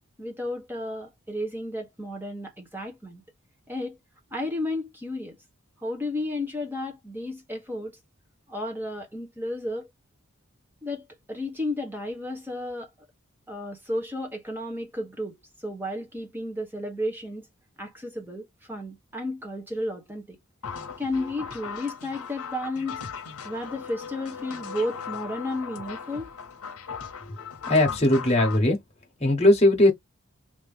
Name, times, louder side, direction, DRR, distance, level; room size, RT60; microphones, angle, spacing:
voice 1, 0.2-3.2 3.7-4.0 4.3-5.4 5.8-8.0 8.5-9.9 10.8-12.9 13.5-15.4 15.6-17.4 17.8-20.4 21.0-23.0 23.4-26.3, left 1 dB, 10° right, 1.1 m, -33 dB
sound 1, 20.6-28.6, left 6 dB, 85° left, 0.9 m, -38 dB
voice 2, 27.7-28.8 29.2-29.9, left 1 dB, 30° left, 1.3 m, -19 dB
3.0 x 3.0 x 3.5 m
head